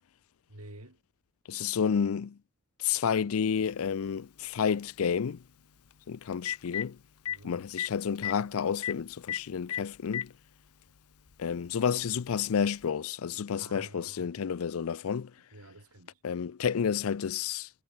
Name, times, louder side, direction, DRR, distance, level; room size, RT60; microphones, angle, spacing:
voice 1, 0.5-1.0 1.6-1.9 7.3-7.7 13.6-14.3 15.5-16.2, right 1 dB, 85° right, 4.4 m, -50 dB
voice 2, 1.5-2.3 2.8-5.4 6.1-7.0 7.4-10.3 11.4-15.3 16.2-17.7, left 7 dB, 65° left, 0.4 m, -30 dB
Telephone, 3.7-3.8 5.9-6.0 6.3-6.8 7.3-7.4 7.8-7.9 8.2-8.3 8.8-8.9 9.3-9.4 9.7-10.3 11.3-11.4 12.8-12.9, left 11 dB, 85° left, 0.8 m, -32 dB
head